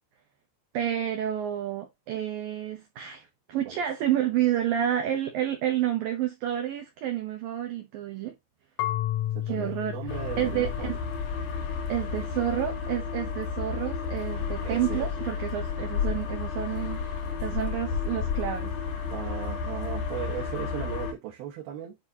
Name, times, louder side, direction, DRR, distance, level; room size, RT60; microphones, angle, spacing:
voice 1, 0.7-8.3 9.5-10.0 10.4-11.0 11.9-17.0 17.4-18.7, right 11 dB, 85° right, 2.0 m, -29 dB
Marimba xylophone / Wood, 8.8-11.7, left 13 dB, 85° left, 3.0 m, -33 dB
voice 2, 9.4-11.0 14.6-15.1 19.1-22.0, right 11 dB, 65° right, 2.7 m, -37 dB
sound 1, 10.1-21.1, left 6 dB, 65° left, 2.0 m, -32 dB
9.5 x 4.2 x 2.8 m
omnidirectional pair, 5.6 m